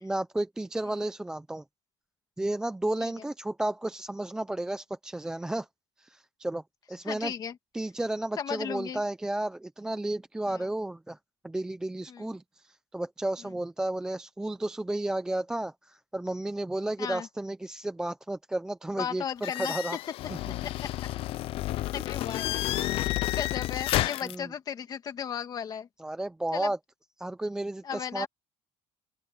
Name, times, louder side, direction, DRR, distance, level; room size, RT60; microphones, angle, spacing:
voice 1, 0.0-1.6 2.4-5.7 6.0-6.6 6.9-7.3 7.7-11.2 11.4-20.0 20.3-20.4 22.8-22.9 24.2-24.5 26.0-26.8 27.2-28.3, right 1 dB, 5° right, 0.5 m, -32 dB
voice 2, 7.1-7.5 8.4-9.0 10.5-10.6 12.1-12.3 17.0-17.3 19.0-19.8 20.8-20.9 21.9-22.6 23.0-25.9 26.5-26.7 27.8-28.3, left 8 dB, 35° left, 2.4 m, -35 dB
sound 1, 19.4-24.3, left 16 dB, 50° left, 0.5 m, -30 dB
open air
cardioid pair, 170°, 12 cm